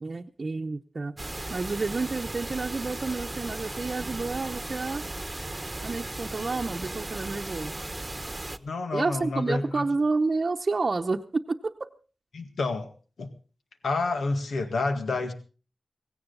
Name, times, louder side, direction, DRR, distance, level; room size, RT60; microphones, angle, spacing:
voice 1, 0.0-1.2 1.5-5.0 5.8-7.8 8.9-11.7, right 3 dB, 50° right, 1 dB, 0.8 m, -29 dB
sound 1, 1.2-8.6, right 2 dB, 20° right, 1.1 m, -36 dB
voice 2, 8.6-9.8 12.3-12.9 13.2-13.3 13.8-15.3, left 3 dB, 85° left, 7 dB, 1.8 m, -29 dB
17.0 x 17.0 x 4.0 m, 0.37 s
wide cardioid pair, 70°, 0 cm